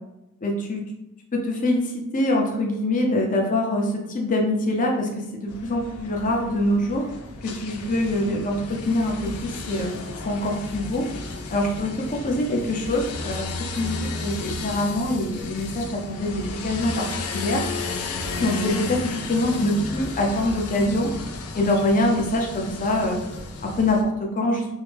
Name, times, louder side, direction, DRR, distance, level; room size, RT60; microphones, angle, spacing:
voice 1, 0.4-0.8 1.3-7.0 7.4-9.4 9.7-10.0 10.2-11.1 11.5-17.1 17.3-17.6 18.4-21.1 21.5-23.2 23.6-24.7, left 1 dB, 35° left, 1 dB, 0.6 m, -24 dB
sound 1, 5.5-24.0, left 3 dB, 85° left, 0.5 m, -33 dB
3.2 x 2.1 x 3.4 m, 0.89 s
head